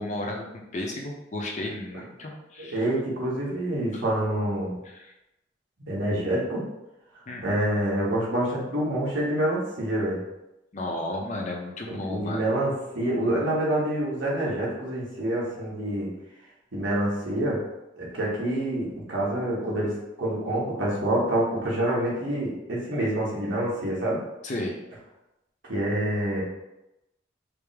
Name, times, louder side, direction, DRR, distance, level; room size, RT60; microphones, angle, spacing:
voice 1, 0.0-2.8 3.9-4.0 4.8-5.1 7.3-7.5 10.7-12.5 24.4-24.8, left 1 dB, 40° left, 0 dB, 0.6 m, -33 dB
voice 2, 2.6-4.8 5.9-6.6 7.4-10.2 11.9-16.1 16.7-17.6 18.0-24.2 25.7-26.4, right 1 dB, 75° right, -5 dB, 1.2 m, -27 dB
4.9 x 2.0 x 3.4 m, 0.93 s
head